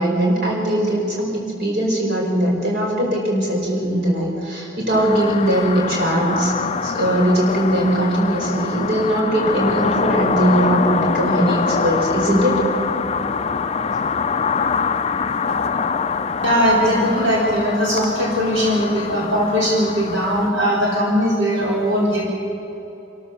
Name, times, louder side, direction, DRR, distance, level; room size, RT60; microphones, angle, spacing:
voice 1, 0.0-6.5 6.8-12.6, right 1 dB, 55° right, -2 dB, 4.8 m, -20 dB
sound 1, 4.9-20.5, left 5 dB, 30° left, 0.4 m, -24 dB
voice 2, 16.4-22.2, equal, 70° right, -4 dB, 4.3 m, -19 dB
27.5 x 13.5 x 6.9 m, 2.9 s
head